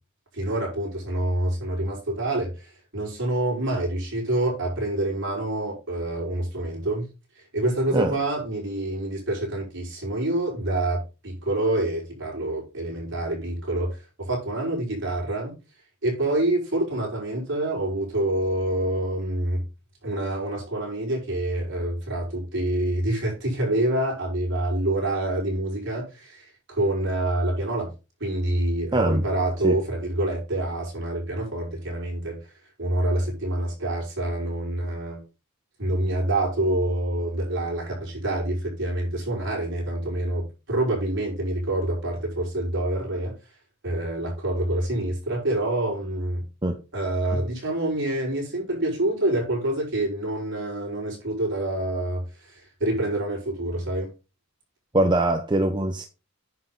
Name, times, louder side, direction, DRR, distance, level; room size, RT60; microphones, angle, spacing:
voice 1, 0.3-7.1 7.4-15.5 16.0-19.6 20.0-27.9 28.2-32.4 32.8-35.2 35.8-43.3 43.8-46.4 46.9-54.1, right 1 dB, 55° right, 5.2 m, -27 dB
voice 2, 28.9-29.2 29.6-29.7 46.6-46.8 47.3-47.4 54.9-56.0, right 1 dB, 20° right, 0.8 m, -22 dB
9.8 x 5.9 x 3.9 m
head